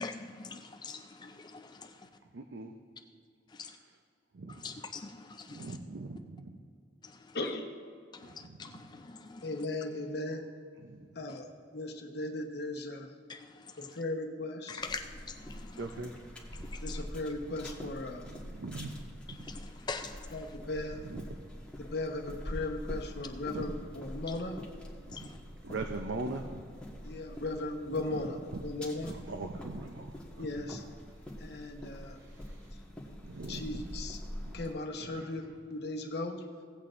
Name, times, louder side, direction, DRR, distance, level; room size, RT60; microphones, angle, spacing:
voice 1, 0.0-2.1 3.5-3.8 4.5-5.8 7.0-7.4 8.1-9.6 11.3-11.4 13.3-14.0 14.7-15.8 16.5-17.0 19.4-20.4 25.1-25.4, left 4 dB, 25° left, 5 dB, 0.4 m, -44 dB
voice 2, 2.3-2.8 4.3-4.7 5.5-6.6 8.2-8.7 10.8-11.2 15.8-16.1 16.6-16.7 18.3-19.0 19.3-19.4 21.0-21.2 23.5-23.7 25.2-25.3 25.6-26.6 28.1-28.6 29.1-30.7 32.1-32.7 33.2-33.9 34.4-34.6 35.0-35.3, right 3 dB, 90° right, 5 dB, 0.6 m, -41 dB
voice 3, 9.4-10.4 11.1-13.1 13.8-14.8 16.8-18.3 20.3-21.0 21.8-24.6 27.0-29.1 30.4-30.8 31.4-32.2 33.5-34.2 34.5-36.4, left 2 dB, 60° left, 2 dB, 1.0 m, -37 dB
sound 1, 14.8-34.7, equal, 5° left, 1.5 m, -45 dB
17.0 x 8.4 x 2.5 m, 2.3 s
head